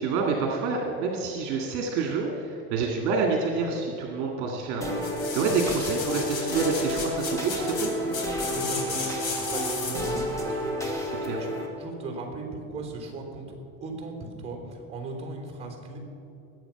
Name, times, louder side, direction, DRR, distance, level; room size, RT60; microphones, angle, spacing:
voice 1, 0.0-7.9 11.2-11.4, right 4 dB, 55° right, 1 dB, 1.9 m, -28 dB
sound 1, 4.8-11.7, equal, 10° left, 1.8 m, -31 dB
sound 2, 5.0-10.2 10.7-10.8, left 4 dB, 60° left, 3.1 m, -34 dB
voice 2, 8.5-16.0, right 3 dB, 20° right, 1 dB, 3.3 m, -38 dB
20.5 x 8.2 x 5.8 m, 2.8 s
cardioid pair, 155°, 34 cm